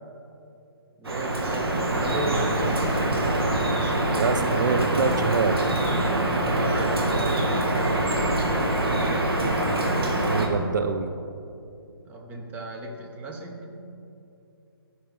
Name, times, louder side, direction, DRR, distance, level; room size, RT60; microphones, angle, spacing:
voice 1, 1.0-3.3 3.8-4.5 6.4-9.3 12.1-13.8, right 1 dB, 10° right, 0 dB, 0.7 m, -36 dB
Drip, 1.0-10.5, right 1 dB, 70° right, 1.4 m, -24 dB
voice 2, 4.2-5.6 10.2-11.1, right 5 dB, 50° right, 7 dB, 0.4 m, -25 dB
13.5 x 5.4 x 3.5 m, 2.7 s
figure-of-eight pair, 140°, 13 cm